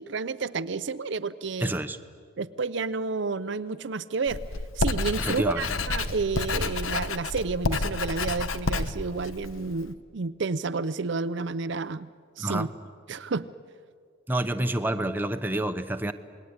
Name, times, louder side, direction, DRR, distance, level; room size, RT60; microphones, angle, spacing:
voice 1, 0.0-1.7 2.4-4.4 4.8-12.1 12.4-12.7 13.1-13.5, right 4 dB, 60° right, 12 dB, 0.6 m, -30 dB
voice 2, 1.6-2.0 5.2-5.7 12.4-12.7 14.3-16.1, right 1 dB, 10° right, 7 dB, 0.9 m, -28 dB
Writing, 4.3-9.9, left 3 dB, 80° left, 1.2 m, -30 dB
27.5 x 20.0 x 9.7 m, 2.1 s
head